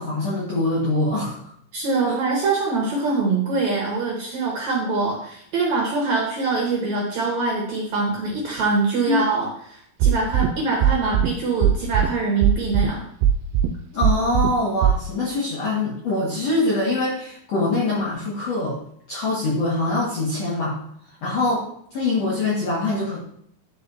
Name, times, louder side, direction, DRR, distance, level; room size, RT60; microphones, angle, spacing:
voice 1, 0.0-1.4 2.1-2.2 9.1-9.2 13.9-18.7 19.1-20.8 21.2-21.6 21.9-23.2, left 2 dB, 65° left, -6 dB, 1.6 m, -23 dB
voice 2, 1.7-13.1, right 3 dB, 70° right, -2 dB, 1.7 m, -24 dB
sound 1, 10.0-10.5 10.8-11.3 11.6-12.1 12.4-12.9 13.2-13.7 14.0-14.5 14.8-14.9, right 9 dB, 85° right, 2.7 m, -17 dB
10.0 x 4.0 x 3.9 m, 0.69 s
omnidirectional pair, 4.8 m